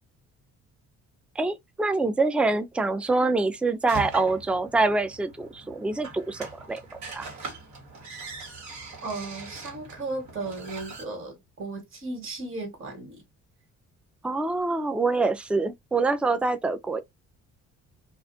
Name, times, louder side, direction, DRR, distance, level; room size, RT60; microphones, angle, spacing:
voice 1, 1.4-6.8 7.1-7.3 14.2-17.0, right 3 dB, 5° right, 0.3 m, -25 dB
sound 1, 3.9-11.0, right 3 dB, 65° right, 1.4 m, -41 dB
voice 2, 9.0-13.2, right 3 dB, 45° right, 1.6 m, -35 dB
2.4 x 2.4 x 2.6 m
cardioid pair, 90°, 30 cm